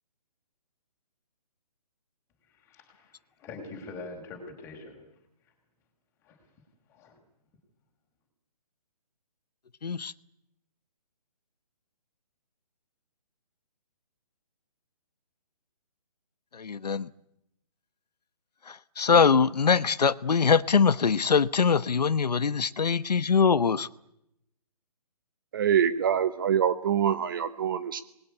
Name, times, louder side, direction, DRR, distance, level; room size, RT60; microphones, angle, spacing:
voice 1, 2.5-5.0 6.2-6.4 6.9-7.1, left 3 dB, 10° left, 2 dB, 5.4 m, -44 dB
voice 2, 9.8-10.1 16.5-17.1 18.6-23.9, left 5 dB, 90° left, 15 dB, 1.1 m, -23 dB
voice 3, 25.5-28.0, right 8 dB, 35° right, 13 dB, 1.0 m, -25 dB
26.0 x 21.0 x 10.0 m, 0.82 s
hypercardioid pair, 165°, 20 cm